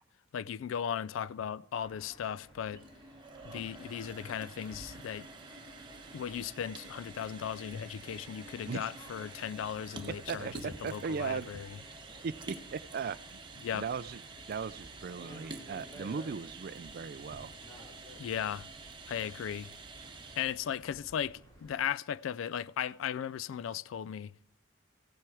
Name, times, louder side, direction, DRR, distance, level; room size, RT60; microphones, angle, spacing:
voice 1, 0.3-2.8 3.4-5.3 6.1-11.8 13.6-13.9 18.2-18.7 19.1-19.7 20.4-24.3, left 9 dB, 70° left, 0.3 m, -37 dB
sound 1, 1.8-21.8, equal, 25° left, 2.9 m, -57 dB
sound 2, 2.6-20.8, right 3 dB, 25° right, 1.1 m, -48 dB
voice 2, 10.3-11.5 12.2-13.4 13.7-14.2 14.5-17.5, right 5 dB, 45° right, 0.3 m, -38 dB
15.0 x 7.5 x 4.8 m
head